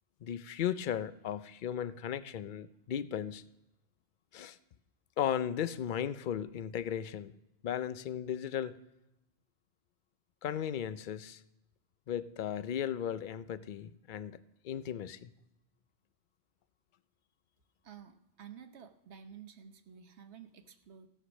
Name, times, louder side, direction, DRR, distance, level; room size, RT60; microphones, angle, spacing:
voice 1, 0.2-3.4 4.3-4.6 5.2-7.3 7.6-8.8 10.4-11.4 12.1-15.3, left 9 dB, 55° left, 14 dB, 0.7 m, -36 dB
voice 2, 17.8-21.1, right 8 dB, 80° right, 8 dB, 1.3 m, -52 dB
16.0 x 8.1 x 6.2 m, 0.91 s
omnidirectional pair, 1.1 m